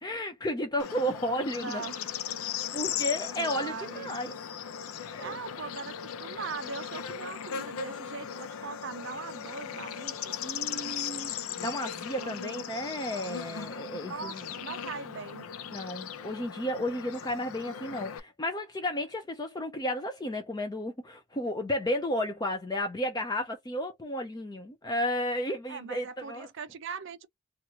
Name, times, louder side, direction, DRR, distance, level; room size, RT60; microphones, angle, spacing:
voice 1, 0.0-1.9 2.7-4.3 5.1-5.4 10.4-11.3 11.6-14.5 15.7-26.5, left 1 dB, 20° left, 0.4 m, -33 dB
Bird / Insect, 0.8-18.2, left 8 dB, 75° left, 0.5 m, -38 dB
voice 2, 1.6-2.1 3.4-4.2 5.2-10.4 12.2-12.6 13.0-13.4 14.0-15.5 25.7-27.3, right 5 dB, 55° right, 0.4 m, -41 dB
2.9 x 2.4 x 2.9 m
head